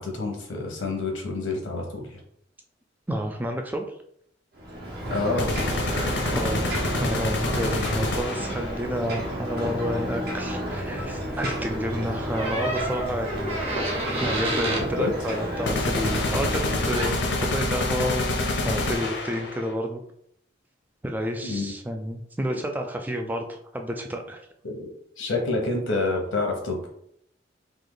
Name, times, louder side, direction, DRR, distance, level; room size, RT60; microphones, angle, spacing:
voice 1, 0.0-2.2 5.1-5.5 14.7-15.1 21.4-21.7 22.5-22.6 24.6-24.9 25.2-26.9, left 3 dB, 85° left, 1 dB, 1.1 m, -28 dB
voice 2, 3.1-3.8 6.3-13.8 14.2-18.3 18.6-20.0 21.0-24.4, equal, 10° right, 3 dB, 0.3 m, -30 dB
Ocean, 4.5-16.8, equal, 50° right, 1.1 m, -31 dB
sound 1, 5.4-8.7 15.7-19.7, left 2 dB, 65° left, 0.8 m, -27 dB
Door, 12.3-14.9 16.7-16.8 17.0-17.3, right 1 dB, 30° right, 1.3 m, -29 dB
3.3 x 2.8 x 3.9 m, 0.69 s
head